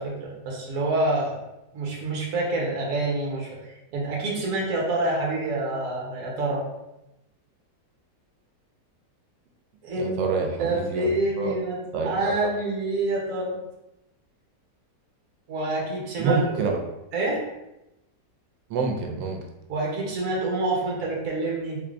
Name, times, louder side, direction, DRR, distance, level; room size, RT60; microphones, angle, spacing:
voice 1, 0.0-1.4 1.7-6.6 9.8-10.2 10.6-13.6 15.5-16.4 17.1-17.4 19.7-21.8, right 2 dB, 55° right, -3 dB, 1.2 m, -27 dB
voice 2, 10.0-11.1 11.4-11.5 11.9-12.1 16.2-16.8 18.7-19.4, right 4 dB, 90° right, 2 dB, 1.3 m, -26 dB
3.4 x 3.4 x 2.4 m, 0.92 s
omnidirectional pair, 1.9 m